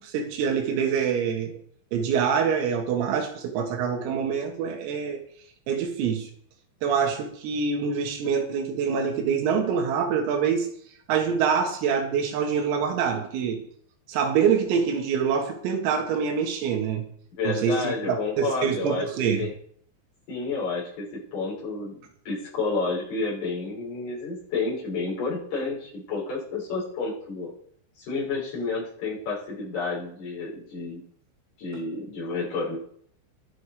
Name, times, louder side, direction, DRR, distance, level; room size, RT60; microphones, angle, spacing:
voice 1, 0.0-1.5 1.9-5.2 5.7-6.3 6.8-10.7 11.1-13.6 14.1-17.0 17.5-19.5, right 6 dB, 85° right, 4 dB, 4.6 m, -25 dB
voice 2, 17.4-19.1 19.4-19.5 20.3-22.0 22.3-27.5 28.0-31.0 31.6-32.8, left 3 dB, 50° left, -6 dB, 8.1 m, -30 dB
22.5 x 7.8 x 5.0 m, 0.62 s
omnidirectional pair, 6.0 m